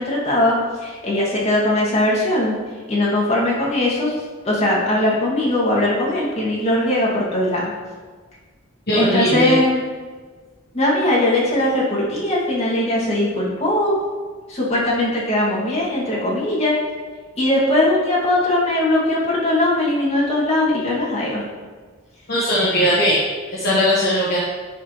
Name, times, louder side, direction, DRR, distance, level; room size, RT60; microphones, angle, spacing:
voice 1, 0.0-2.6 2.9-4.1 4.4-7.7 9.0-9.8 10.7-13.9 14.5-16.8 17.4-21.4, left 1 dB, 30° left, -7 dB, 2.2 m, -20 dB
voice 2, 8.9-9.6 22.3-23.2 23.5-24.4, equal, 50° left, -7 dB, 1.3 m, -18 dB
11.0 x 5.0 x 3.2 m, 1.4 s
head